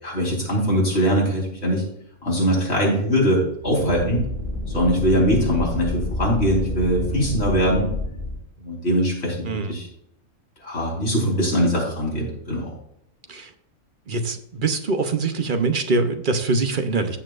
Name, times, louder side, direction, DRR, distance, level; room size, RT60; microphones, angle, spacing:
voice 1, 0.0-1.8 2.2-4.3 4.7-7.9 8.6-9.9 10.6-12.7, equal, 50° left, -3 dB, 4.3 m, -22 dB
sound 1, 3.5-8.4, left 1 dB, 60° right, 4.9 m, -28 dB
voice 2, 14.1-17.2, right 3 dB, 45° right, 7 dB, 0.9 m, -23 dB
15.5 x 7.2 x 2.5 m, 0.77 s
omnidirectional pair, 1.4 m